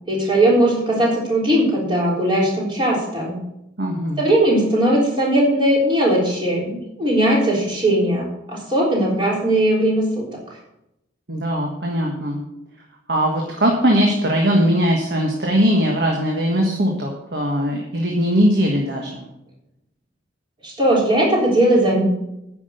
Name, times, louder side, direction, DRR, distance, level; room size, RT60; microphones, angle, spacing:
voice 1, 0.1-3.4 4.2-10.1 10.3-10.4 20.6-22.0, right 1 dB, 25° right, -3 dB, 3.7 m, -18 dB
voice 2, 3.8-4.2 11.3-12.4 13.1-19.2, equal, 60° right, 0 dB, 1.6 m, -20 dB
9.8 x 6.2 x 7.9 m, 0.84 s
head